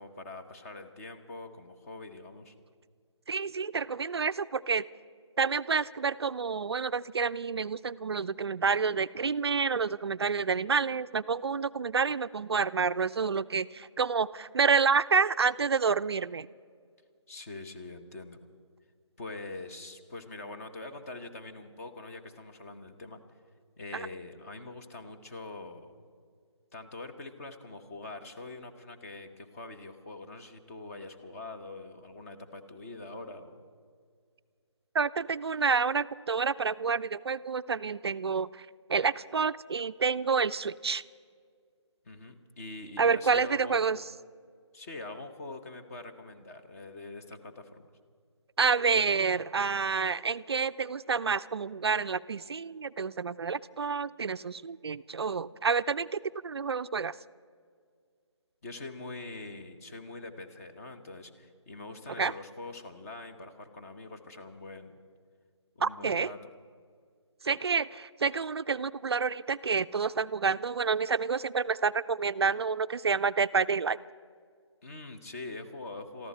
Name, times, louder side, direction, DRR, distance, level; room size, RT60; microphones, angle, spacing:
voice 1, 0.0-2.5 17.3-18.4 19.2-23.2 23.8-25.9 26.7-33.6 42.0-44.0 44.7-47.8 58.6-65.0 65.7-66.4 74.8-76.3, left 2 dB, 30° left, 6 dB, 1.2 m, -44 dB
voice 2, 3.3-4.8 5.4-16.5 23.9-24.1 34.9-41.0 43.0-44.0 48.6-57.2 62.2-62.3 65.8-66.3 67.4-74.0, right 5 dB, 55° right, 14 dB, 0.4 m, -29 dB
23.0 x 14.0 x 4.3 m, 2.1 s
figure-of-eight pair, 155°, 16 cm